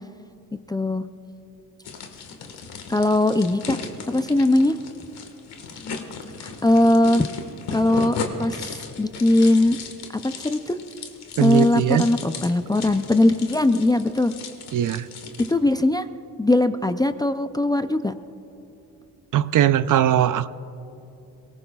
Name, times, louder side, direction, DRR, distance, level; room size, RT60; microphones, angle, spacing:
voice 1, 0.7-1.0 2.9-3.8 4.1-4.8 6.4-7.3 7.7-9.8 10.2-10.8 11.4-14.3 15.5-16.1 16.4-18.1, left 1 dB, 10° left, 8 dB, 0.3 m, -20 dB
sound 1, 1.8-15.5, left 4 dB, 85° left, 1.6 m, -36 dB
voice 2, 11.4-12.0 14.7-15.1 19.3-20.5, right 11 dB, 55° right, 15 dB, 0.5 m, -20 dB
22.5 x 19.5 x 2.3 m, 2.8 s
cardioid pair, 110°, 38 cm